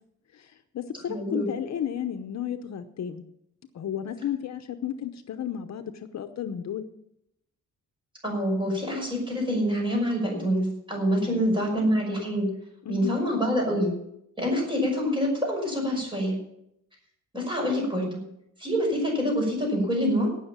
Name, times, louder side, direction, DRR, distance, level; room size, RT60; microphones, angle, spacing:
voice 1, 0.3-3.3 3.7-6.9 11.2-11.4 12.8-13.1, left 9 dB, 60° left, 8 dB, 0.9 m, -33 dB
voice 2, 1.1-1.5 8.2-12.5 12.9-13.9 14.4-16.4 17.3-18.2 18.6-20.3, equal, 15° right, 0 dB, 5.7 m, -26 dB
18.0 x 6.5 x 7.3 m, 0.79 s
wide cardioid pair, 165°, 30 cm